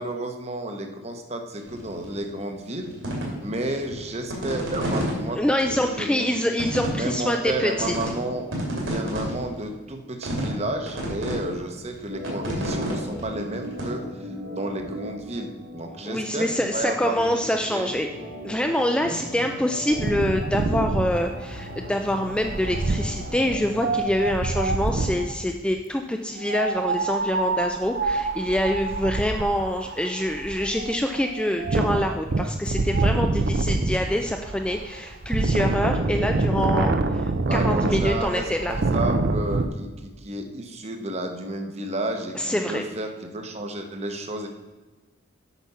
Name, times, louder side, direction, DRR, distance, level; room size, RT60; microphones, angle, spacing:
voice 1, 0.0-2.9 3.4-6.3 6.9-17.4 17.7-17.9 19.0-19.2 37.4-44.5, right 1 dB, 30° right, 5 dB, 1.0 m, -32 dB
sound 1, 1.7-2.1 2.6-5.1 5.6-5.7 6.2-6.3 6.6-7.5 7.8-8.1 8.4-9.7 10.2-10.6 10.9-11.4 11.8-13.9, equal, 65° right, 2.8 m, -29 dB
voice 2, 5.3-7.9 16.0-18.1 18.4-38.7 42.4-42.9, left 1 dB, 5° left, 4 dB, 0.3 m, -25 dB
Organ, 12.0-24.2, left 1 dB, 85° right, 2.9 m, -38 dB
Wind, 19.9-25.3 26.4-39.7, right 2 dB, 50° right, 0.6 m, -26 dB
8.2 x 5.9 x 5.5 m, 1.2 s
head